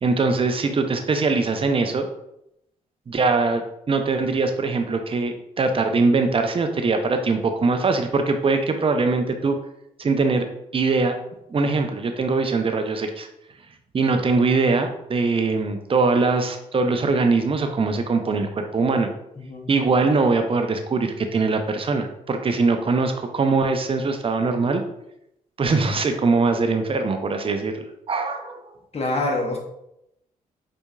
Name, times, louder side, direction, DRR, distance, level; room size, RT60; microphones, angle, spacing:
voice 1, 0.0-2.1 3.1-9.6 10.0-10.5 10.7-11.2 11.5-13.3 13.9-19.1 19.7-24.8 25.6-28.6, right 3 dB, 35° right, 6 dB, 0.6 m, -22 dB
voice 2, 19.4-19.7 28.9-29.6, left 2 dB, 40° left, 1 dB, 0.9 m, -25 dB
4.4 x 2.6 x 2.3 m, 0.81 s
hypercardioid pair, 50°, 16 cm